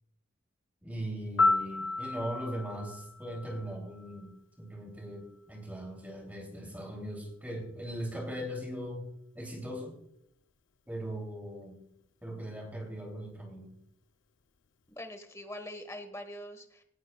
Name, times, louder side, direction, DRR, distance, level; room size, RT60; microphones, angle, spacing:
voice 1, 0.8-9.1 9.3-10.0 10.9-11.8 12.2-13.8, equal, 10° right, 1 dB, 2.8 m, -39 dB
Piano, 1.4-4.3 12.5-12.7, left 3 dB, 70° left, 0.6 m, -31 dB
voice 2, 15.0-16.8, left 1 dB, 15° left, 7 dB, 1.2 m, -43 dB
18.0 x 11.5 x 2.3 m, 0.71 s
head